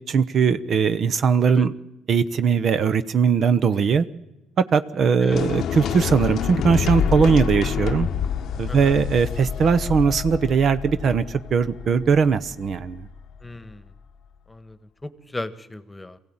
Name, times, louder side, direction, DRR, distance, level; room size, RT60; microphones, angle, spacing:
voice 1, 0.0-1.7 2.1-4.0 4.6-8.1 8.6-13.0, right 6 dB, 50° right, 13 dB, 0.9 m, -20 dB
sound 1, 5.3-13.4, left 8 dB, 60° left, 0.8 m, -27 dB
voice 2, 8.7-9.0 13.4-13.8 14.5-16.2, left 2 dB, 15° left, 13 dB, 1.4 m, -36 dB
23.0 x 16.0 x 8.8 m, 0.94 s
hypercardioid pair, 65°, 0 cm